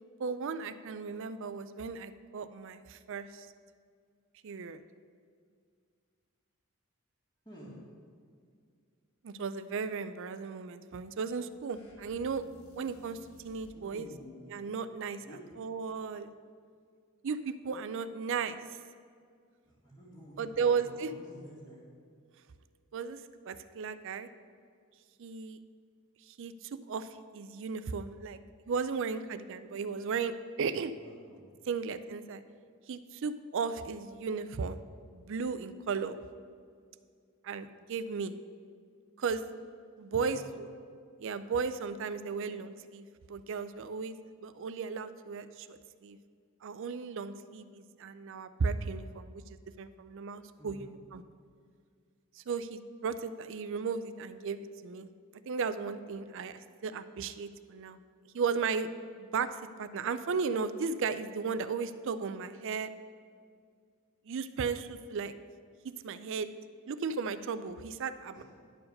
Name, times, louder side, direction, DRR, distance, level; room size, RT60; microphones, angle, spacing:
voice 1, 0.2-3.5 4.4-4.8 9.2-12.5 12.7-14.1 14.5-15.2 15.6-16.3 17.2-18.6 20.4-21.1 22.9-23.2 23.5-24.3 25.2-25.6 26.3-28.4 28.7-30.9 31.7-32.4 32.9-34.8 35.1-36.2 37.4-38.4 39.2-39.5 40.0-40.7 41.2-46.2 46.6-51.2 52.4-55.1 55.5-58.0 58.3-58.9 59.2-62.9 64.3-65.3 65.8-66.5 66.9-68.4, right 5 dB, 60° right, 12 dB, 0.4 m, -35 dB
voice 2, 7.5-7.8 13.7-14.5 15.2-15.4 19.6-21.8 31.0-31.5 40.2-40.5 50.6-50.8 68.3-68.4, equal, 20° left, -11 dB, 1.9 m, -50 dB
sound 1, 11.7-13.9, left 1 dB, 75° left, 1.1 m, -57 dB
11.0 x 4.7 x 6.5 m, 2.1 s
head